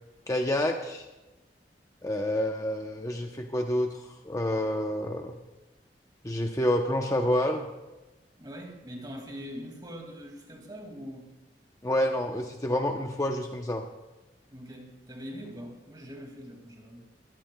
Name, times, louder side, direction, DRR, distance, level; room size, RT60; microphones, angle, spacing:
voice 1, 0.3-1.1 2.0-5.4 6.2-7.7 11.8-13.8, left 1 dB, 20° left, 3 dB, 0.7 m, -28 dB
voice 2, 8.4-11.3 14.5-17.0, equal, 25° right, 2 dB, 2.3 m, -42 dB
23.0 x 17.0 x 2.3 m, 1.1 s
head